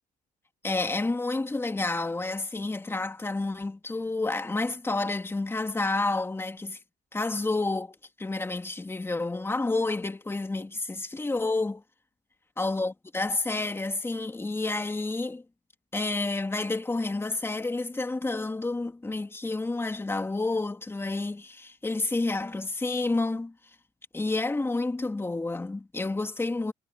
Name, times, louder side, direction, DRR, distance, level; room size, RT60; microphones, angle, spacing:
voice 1, 0.6-6.8 7.1-11.8 12.6-15.4 15.9-23.5 24.1-26.7, left 2 dB, 15° left, 2.5 m, -29 dB
cardioid pair, 110°, 17 cm